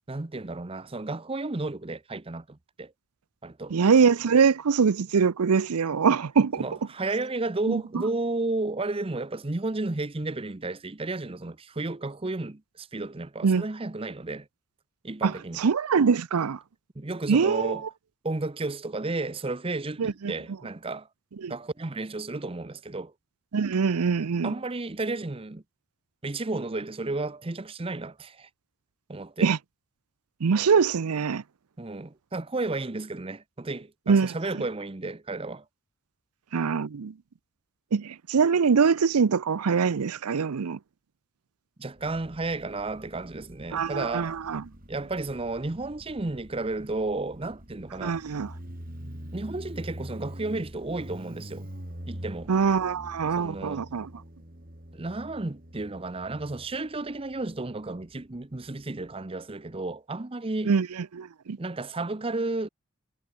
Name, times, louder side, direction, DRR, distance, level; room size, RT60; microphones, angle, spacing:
voice 1, 0.1-2.9 3.4-3.8 6.6-14.5 15.0-15.6 16.9-17.8 18.2-21.1 21.5-23.1 24.4-25.6 26.2-28.5 29.1-29.5 31.8-35.6 41.8-44.4 44.9-48.2 49.3-51.7 52.1-52.5 53.4-53.9 54.9-60.7 61.6-62.7, right 2 dB, 25° right, 0.7 m, -32 dB
voice 2, 3.7-6.7 7.7-7.8 13.4-13.6 15.2-16.6 17.3-17.8 20.0-20.3 21.4-21.5 23.5-24.5 29.4-29.6 30.4-31.4 34.1-34.3 36.5-37.1 37.9-40.8 43.7-44.6 48.0-48.5 52.5-54.1 60.6-60.9 61.1-61.6, right 5 dB, 85° right, 0.6 m, -23 dB
Motorcycle, 42.0-59.2, equal, 40° right, 4.4 m, -45 dB
head